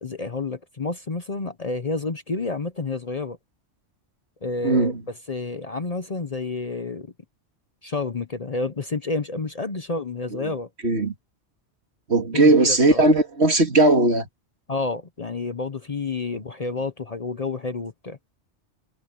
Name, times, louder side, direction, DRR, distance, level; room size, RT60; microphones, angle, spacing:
voice 1, 0.0-3.4 4.4-4.9 5.3-7.1 7.8-10.7 12.3-13.0 14.7-18.2, left 3 dB, 35° left, 0.9 m, -29 dB
voice 2, 4.6-5.0 10.3-10.5 10.8-11.1 12.1-14.3, right 2 dB, 65° right, 2.6 m, -18 dB
omnidirectional pair, 1.2 m